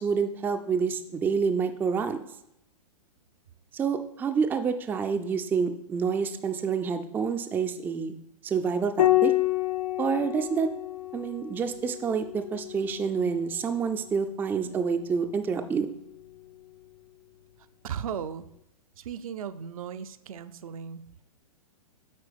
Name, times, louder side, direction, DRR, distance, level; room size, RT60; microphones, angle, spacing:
voice 1, 0.0-2.2 3.7-8.1 8.4-9.3 10.0-10.7 11.1-15.9, right 6 dB, 10° right, 7 dB, 0.3 m, -28 dB
Piano, 9.0-13.8 15.5-16.3, left 16 dB, 75° left, 0.6 m, -29 dB
voice 2, 17.8-18.5 19.0-21.2, right 8 dB, 65° right, 11 dB, 0.5 m, -36 dB
8.3 x 4.5 x 3.4 m, 0.81 s
hypercardioid pair, 115°, 19 cm